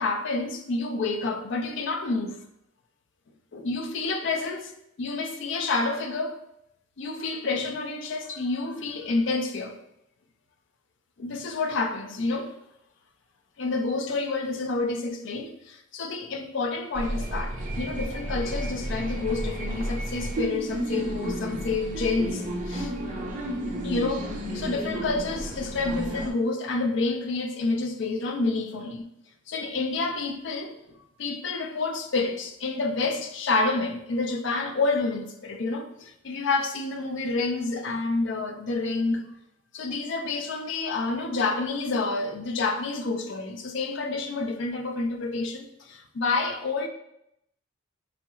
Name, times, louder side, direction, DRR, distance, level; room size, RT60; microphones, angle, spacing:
voice 1, 0.0-2.4 3.5-4.7 5.0-6.4 7.0-9.8 11.2-12.5 13.6-22.9 23.8-29.0 29.5-30.8 31.2-39.2 39.7-46.9, left 3 dB, 60° left, 0.4 m, -29 dB
sound 1, 16.9-26.3, right 1 dB, 35° right, 0.5 m, -32 dB
4.9 x 2.3 x 3.0 m
head